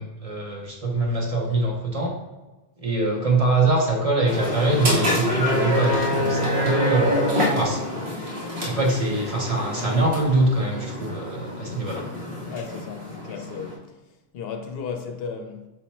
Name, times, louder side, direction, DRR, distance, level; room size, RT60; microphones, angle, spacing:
voice 1, 0.0-2.2 2.8-7.2 7.5-7.8 8.6-12.1, right 2 dB, 40° right, 0.6 m, -23 dB
sound 1, 4.3-13.7, left 1 dB, 60° right, 1.3 m, -26 dB
voice 2, 12.5-13.8 14.3-15.7, left 6 dB, 70° left, 0.8 m, -34 dB
5.7 x 2.1 x 4.2 m
omnidirectional pair, 1.1 m